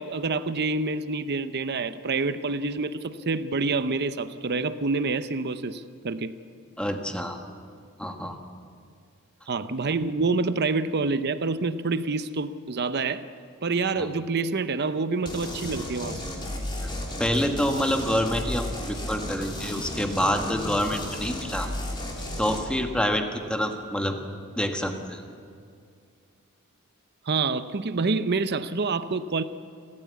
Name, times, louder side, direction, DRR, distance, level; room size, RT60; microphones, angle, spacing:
voice 1, 0.0-6.3 9.5-13.2 13.6-16.2 27.3-29.4, right 3 dB, 50° right, 12 dB, 0.7 m, -27 dB
voice 2, 6.8-7.4 8.0-8.4 14.0-14.1 16.8-16.9 17.2-21.7 22.4-24.2 24.6-25.2, equal, 5° left, 4 dB, 1.4 m, -27 dB
sound 1, 15.3-22.6, left 1 dB, 20° left, 3.4 m, -34 dB
30.0 x 13.0 x 8.4 m, 2.3 s
head